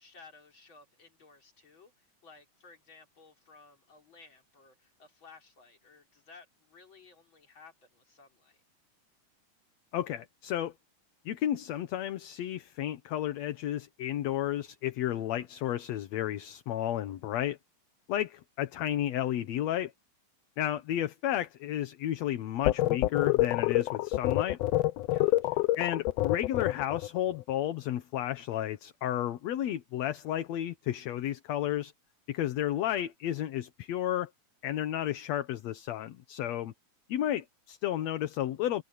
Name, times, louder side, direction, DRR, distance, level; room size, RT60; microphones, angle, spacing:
voice 1, 0.0-8.6 25.1-25.7, left 4 dB, 40° left, 4.6 m, -56 dB
voice 2, 9.9-10.7 11.3-17.6 18.1-19.9 20.6-24.6 25.8-31.9 32.3-34.3 34.6-36.7 37.1-38.8, left 12 dB, 65° left, 2.1 m, -32 dB
sound 1, 22.7-27.1, left 16 dB, 85° left, 1.4 m, -27 dB
omnidirectional pair, 3.6 m